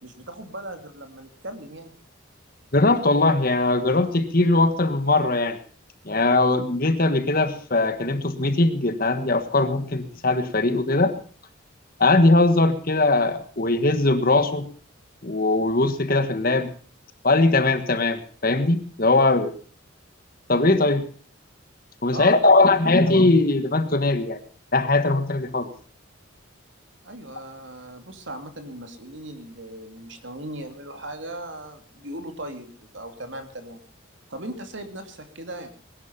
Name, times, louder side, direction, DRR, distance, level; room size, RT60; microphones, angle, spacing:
voice 1, 0.0-2.0 22.1-22.7 27.0-33.8 34.3-35.7, right 1 dB, 65° right, 7 dB, 2.7 m, -38 dB
voice 2, 2.7-5.6 6.0-11.1 12.0-14.7 15.2-16.7 17.2-19.5 20.5-21.1 22.0-24.4 24.7-25.7, left 2 dB, 45° left, 9 dB, 1.5 m, -20 dB
20.0 x 11.0 x 5.7 m, 0.42 s
head